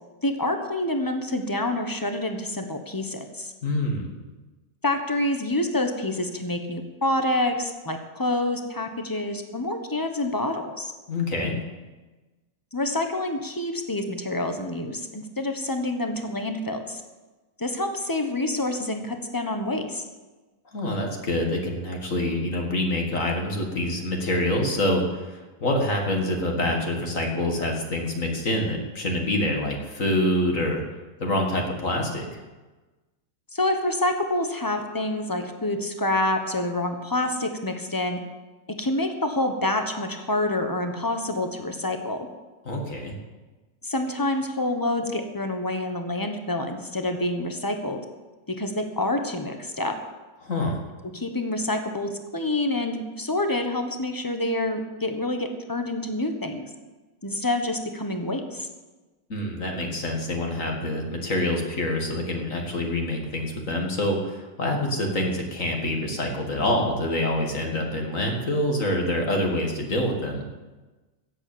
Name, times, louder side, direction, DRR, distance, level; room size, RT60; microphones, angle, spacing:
voice 1, 0.2-3.5 4.8-10.9 12.7-17.0 17.6-20.0 33.5-38.2 38.8-42.2 43.8-48.0 48.5-49.9 51.1-56.7 57.2-58.7, left 1 dB, 15° left, 6 dB, 1.1 m, -27 dB
voice 2, 3.6-4.1 11.1-11.6 20.7-30.8 31.2-32.4 42.7-43.1 50.4-50.8 59.3-70.5, left 1 dB, 45° left, 1 dB, 2.3 m, -26 dB
14.0 x 8.2 x 8.7 m, 1.2 s
omnidirectional pair, 2.0 m